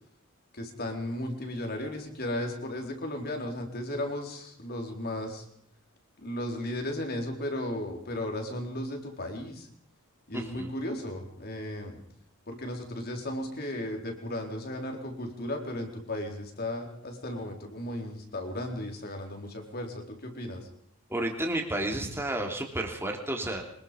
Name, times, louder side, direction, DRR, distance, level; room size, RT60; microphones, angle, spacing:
voice 1, 0.5-5.4 6.2-9.7 10.3-12.0 12.5-20.7, left 1 dB, 45° left, 3 dB, 4.4 m, -35 dB
voice 2, 10.3-10.7 21.1-23.6, right 1 dB, 10° right, 2 dB, 3.3 m, -31 dB
24.5 x 21.5 x 5.4 m, 0.67 s
head